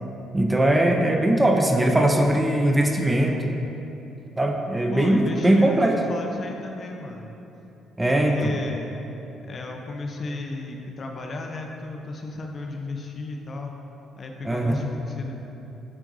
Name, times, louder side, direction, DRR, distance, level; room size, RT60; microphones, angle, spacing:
voice 1, 0.3-3.5 4.4-6.0 8.0-8.5 14.4-14.8, right 1 dB, 15° right, 2 dB, 0.7 m, -20 dB
voice 2, 4.9-7.3 8.0-8.9 9.5-13.7 14.2-15.4, left 2 dB, 45° left, 2 dB, 0.7 m, -34 dB
9.8 x 4.5 x 2.7 m, 3.0 s
hypercardioid pair, 50°, 0 cm